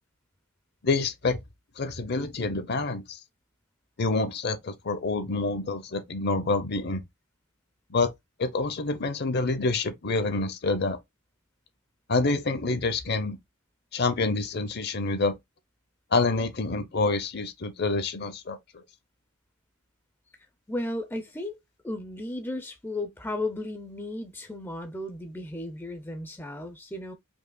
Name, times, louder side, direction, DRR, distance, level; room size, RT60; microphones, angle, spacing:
voice 1, 0.8-1.4 1.8-3.2 4.0-7.0 7.9-8.1 8.4-11.0 12.1-13.4 13.9-15.4 16.1-18.6, left 3 dB, 50° left, 0.7 m, -27 dB
voice 2, 20.7-21.6 21.8-27.1, left 1 dB, 10° left, 0.5 m, -34 dB
4.7 x 2.8 x 2.2 m
head